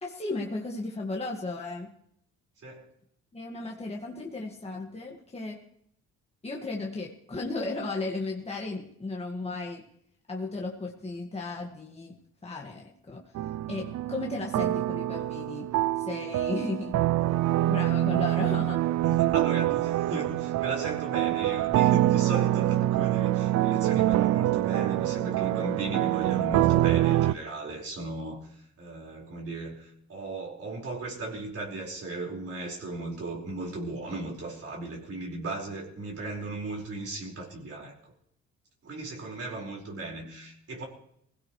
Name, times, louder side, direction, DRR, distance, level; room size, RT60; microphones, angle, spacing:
voice 1, 0.0-1.9 3.3-5.6 6.4-9.8 10.3-12.2 12.4-13.2 13.7-17.1 17.7-18.8, left 3 dB, 20° left, -1 dB, 2.0 m, -35 dB
voice 2, 2.6-2.9 19.0-38.1 38.8-40.8, right 2 dB, 50° right, -2 dB, 5.3 m, -37 dB
sound 1, 13.3-27.3, right 14 dB, 65° right, 0.5 m, -25 dB
21.0 x 16.5 x 3.3 m, 0.70 s
cardioid pair, 90°, 30 cm